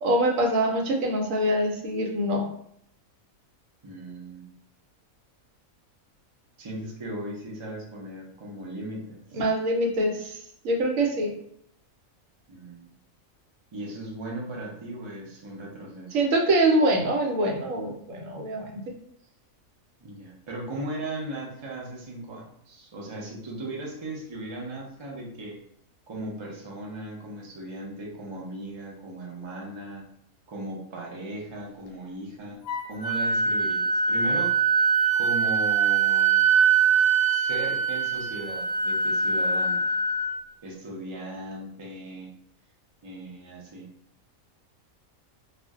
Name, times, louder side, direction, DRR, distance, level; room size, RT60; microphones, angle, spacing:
voice 1, 0.0-2.4 9.3-10.4 10.6-11.3 16.1-18.8, right 1 dB, 70° right, 1 dB, 1.0 m, -24 dB
voice 2, 3.8-4.5 6.6-9.4 12.5-12.9 13.7-16.2 20.0-25.6 26.1-30.1 30.5-34.5 35.2-36.4 37.3-40.0 40.6-42.4 43.0-43.9, right 1 dB, 45° right, -3 dB, 0.3 m, -37 dB
Wind instrument woodwind instrument, 32.7-40.4, right 5 dB, 75° left, 0.9 m, -23 dB
2.4 x 2.1 x 3.5 m, 0.71 s
omnidirectional pair, 1.4 m